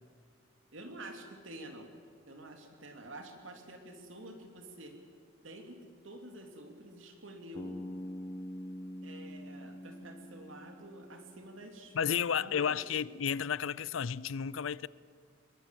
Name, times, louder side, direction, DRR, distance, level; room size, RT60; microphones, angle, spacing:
voice 1, 0.7-1.9 2.3-4.9 5.4-7.8 9.0-11.9 12.3-13.0, right 1 dB, 75° right, 3.1 m, -49 dB
Bass guitar, 7.6-11.6, equal, 25° left, 1.7 m, -44 dB
voice 2, 11.9-14.9, left 7 dB, 70° left, 0.5 m, -32 dB
22.5 x 19.5 x 7.7 m
head